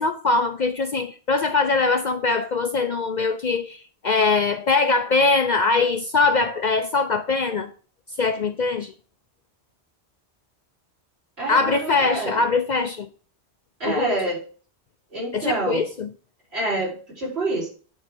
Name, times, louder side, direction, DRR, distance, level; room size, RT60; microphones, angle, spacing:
voice 1, 0.0-7.7 8.2-8.9 11.5-13.1 13.8-14.2 15.3-16.1, left 4 dB, 50° left, 0.6 m, -22 dB
voice 2, 11.4-12.4 13.8-14.4 15.1-15.8 16.5-17.7, right 2 dB, 70° right, 4.0 m, -27 dB
8.7 x 3.6 x 6.1 m
omnidirectional pair, 1.1 m